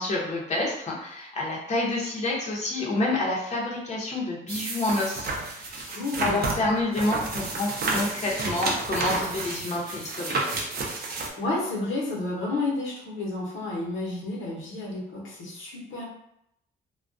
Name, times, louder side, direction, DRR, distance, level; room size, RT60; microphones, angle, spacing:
voice 1, 0.0-10.6, left 2 dB, 35° left, -4 dB, 0.7 m, -28 dB
sound 1, 4.5-11.3, right 3 dB, 50° right, 0.5 m, -30 dB
voice 2, 5.9-6.4 11.4-16.1, left 2 dB, 85° left, -3 dB, 0.8 m, -31 dB
2.2 x 2.2 x 2.5 m, 0.79 s
cardioid pair, 100°, 20 cm